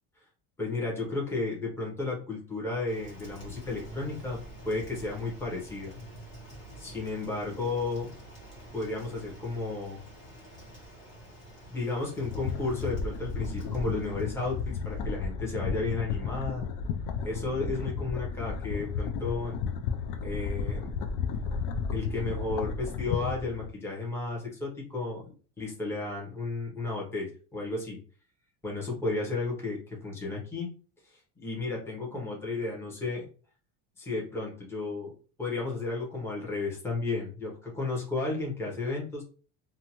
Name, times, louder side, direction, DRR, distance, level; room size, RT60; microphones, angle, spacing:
voice 1, 0.6-4.4 4.6-6.0 6.8-8.1 8.7-10.0 11.7-16.7 17.2-19.6 20.2-20.9 21.9-28.0 28.6-30.7 31.0-33.3 34.0-35.1 35.4-39.2, left 3 dB, 5° left, -3 dB, 0.7 m, -33 dB
Rain, 2.9-15.3, right 1 dB, 30° left, 1.1 m, -48 dB
sound 1, 12.1-23.7, left 5 dB, 55° left, 0.5 m, -33 dB
2.6 x 2.2 x 2.9 m, 0.38 s
cardioid pair, 160°, 41 cm